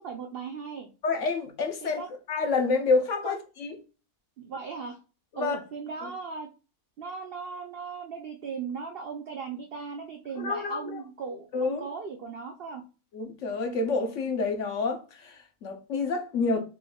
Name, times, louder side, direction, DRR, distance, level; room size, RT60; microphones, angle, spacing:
voice 1, 0.0-0.9 1.8-2.1 3.2-3.3 4.4-5.0 5.4-6.5 7.0-12.8, right 5 dB, 70° right, 0.5 m, -37 dB
voice 2, 1.0-2.0 2.3-3.8 5.4-5.6 10.4-11.0 11.5-11.9 13.1-16.6, left 4 dB, 60° left, 1.0 m, -28 dB
4.2 x 3.4 x 2.3 m
omnidirectional pair, 1.6 m